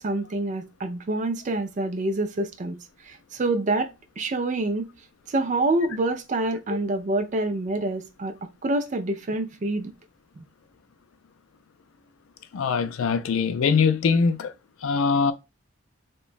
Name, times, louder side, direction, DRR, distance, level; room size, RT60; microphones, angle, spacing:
voice 1, 0.0-2.8 3.0-4.9 5.3-8.4 8.6-9.9 10.4-10.5, right 2 dB, 35° right, 0.4 m, -27 dB
voice 2, 12.5-14.5 14.8-15.3, left 5 dB, 75° left, 0.4 m, -22 dB
2.9 x 2.2 x 2.4 m
head